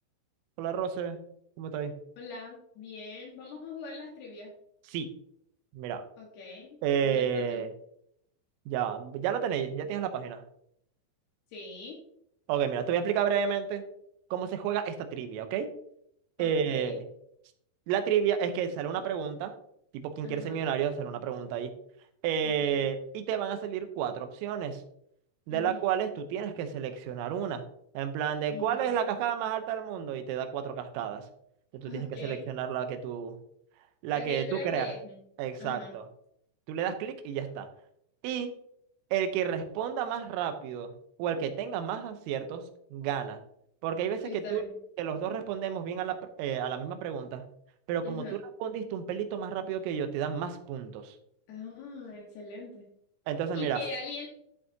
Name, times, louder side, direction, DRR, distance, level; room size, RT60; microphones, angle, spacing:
voice 1, 0.6-1.2 1.6-1.9 4.9-5.1 5.7-6.0 6.8-7.7 8.7-10.4 12.5-13.8 14.3-15.7 16.4-17.0 17.9-19.5 19.9-21.7 22.2-24.8 25.5-27.6 28.0-31.2 31.7-33.4 34.0-34.9 35.4-36.1 36.7-37.7 38.2-38.5 39.1-40.9 41.2-42.6 42.9-43.4 43.8-44.6 45.0-47.4 47.9-48.2 48.6-51.2 53.3-53.8, right 8 dB, 80° right, 8 dB, 3.4 m, -31 dB
voice 2, 2.2-4.5 6.2-6.8 7.0-7.6 11.5-12.0 16.4-17.0 20.2-20.6 22.4-22.8 25.5-25.9 28.5-29.2 31.9-32.5 34.1-35.2 35.6-35.9 44.2-44.7 48.0-48.4 51.5-52.9 53.5-54.3, left 4 dB, 65° left, -1 dB, 3.0 m, -42 dB
14.0 x 6.0 x 2.8 m, 0.72 s
omnidirectional pair, 6.0 m